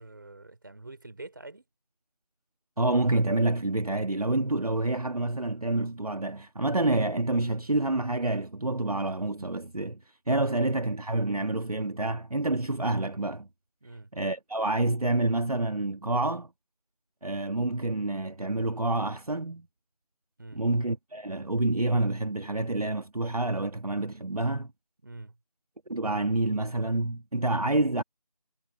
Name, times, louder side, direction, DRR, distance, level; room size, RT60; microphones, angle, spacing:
voice 1, 0.0-1.6 13.8-14.1 20.4-20.6 25.0-25.4, right 2 dB, 30° right, 3.3 m, -46 dB
voice 2, 2.8-10.0 10.3-13.5 14.1-16.5 17.2-19.7 20.5-24.7 25.9-28.0, right 2 dB, 65° right, 1.7 m, -28 dB
figure-of-eight pair, 175°, 20 cm